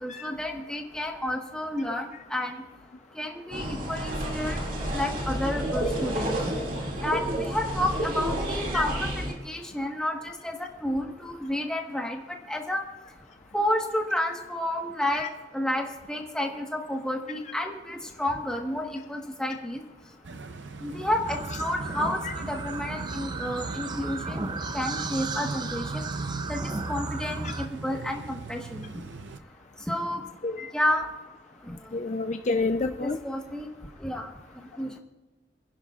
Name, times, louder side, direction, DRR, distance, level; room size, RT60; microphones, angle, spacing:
voice 1, 0.0-2.6 3.1-4.6 4.9-6.4 7.0-12.2 12.5-12.8 13.5-15.3 15.5-19.8 20.8-24.4 24.7-25.8 26.5-26.6 26.9-28.9 29.9-30.2 30.7-31.1 31.7-31.8 33.0-33.7 34.0-34.3 34.8-34.9, left 1 dB, 5° left, 1 dB, 1.3 m, -30 dB
sound 1, 3.5-9.3, right 1 dB, 45° right, 2.3 m, -30 dB
sound 2, 20.2-29.4, right 3 dB, 90° right, 0.6 m, -40 dB
sound 3, 21.3-27.7, right 3 dB, 25° right, 0.6 m, -34 dB
voice 2, 31.9-33.2, left 3 dB, 40° left, 7 dB, 0.4 m, -28 dB
29.5 x 10.5 x 2.4 m, 1.2 s
head